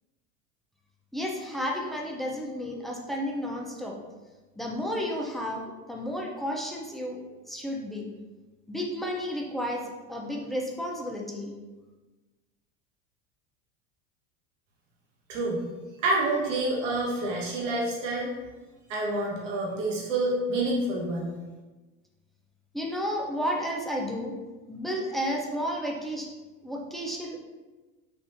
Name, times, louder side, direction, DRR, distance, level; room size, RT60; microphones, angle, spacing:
voice 1, 1.1-4.0 4.6-8.1 8.7-9.8 10.1-11.5 22.7-24.4 24.7-26.3 26.6-27.4, equal, ahead, -1 dB, 0.3 m, -32 dB
voice 2, 15.3-15.6 16.0-18.3 18.9-21.3, right 2 dB, 85° right, -4 dB, 0.9 m, -28 dB
3.5 x 2.4 x 2.6 m, 1.2 s
hypercardioid pair, 90°, 36 cm